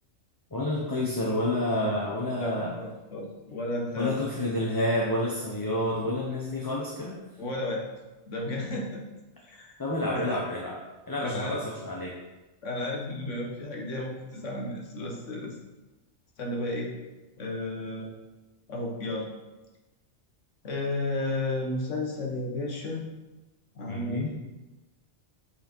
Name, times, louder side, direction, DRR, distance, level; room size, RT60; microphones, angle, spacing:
voice 1, 0.5-2.8 4.0-7.2 9.8-10.8 11.1-12.2 23.9-24.3, left 1 dB, 20° left, -3 dB, 0.9 m, -29 dB
voice 2, 2.4-4.2 7.4-7.8 8.3-9.0 9.4-9.7 10.1-10.4 11.2-11.6 12.6-15.6 16.4-16.9 17.4-18.1 18.7-19.3 20.6-23.0 23.8-24.4, left 2 dB, 85° left, 0 dB, 1.7 m, -33 dB
7.9 x 5.6 x 4.5 m, 1.1 s
omnidirectional pair, 1.2 m